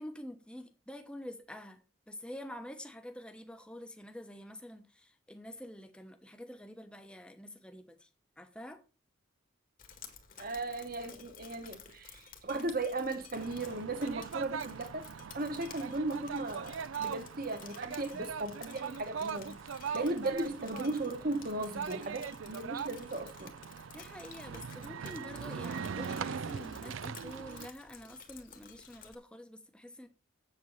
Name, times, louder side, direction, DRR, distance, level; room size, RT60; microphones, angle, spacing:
voice 1, 0.0-8.1 8.4-8.8 12.5-12.6 23.9-30.1, equal, 5° left, 0.9 m, -47 dB
Drip, 9.8-29.1, left 7 dB, 40° left, 1.7 m, -54 dB
voice 2, 10.4-15.1 15.3-19.5 19.9-23.5, right 2 dB, 45° right, 1.3 m, -36 dB
sound 1, 13.4-27.7, right 6 dB, 75° right, 0.5 m, -41 dB
7.8 x 7.7 x 5.5 m
head